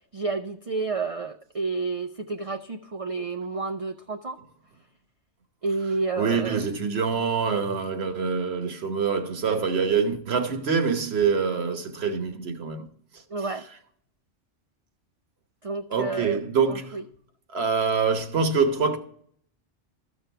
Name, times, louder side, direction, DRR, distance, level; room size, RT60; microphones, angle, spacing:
voice 1, 0.1-4.4 5.6-6.7 13.3-13.7 15.6-16.4 16.7-17.0, right 3 dB, 40° right, 0.5 m, -30 dB
voice 2, 6.2-12.9 15.9-17.0 17.5-19.0, right 5 dB, 60° right, 1.3 m, -25 dB
13.5 x 6.2 x 4.5 m
omnidirectional pair, 1.2 m